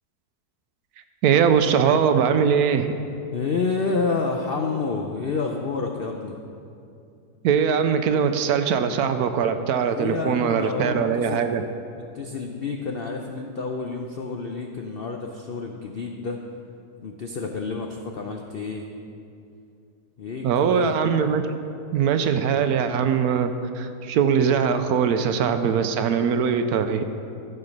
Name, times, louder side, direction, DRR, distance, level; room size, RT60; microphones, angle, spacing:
voice 1, 1.2-3.0 7.4-11.6 20.4-21.4 21.9-27.1, right 7 dB, 75° right, 9 dB, 1.0 m, -21 dB
voice 2, 3.3-6.3 9.8-11.6 12.1-16.4 17.0-18.9 20.2-20.9, left 4 dB, 70° left, 2 dB, 0.5 m, -29 dB
13.0 x 6.6 x 5.3 m, 2.6 s
omnidirectional pair, 1.8 m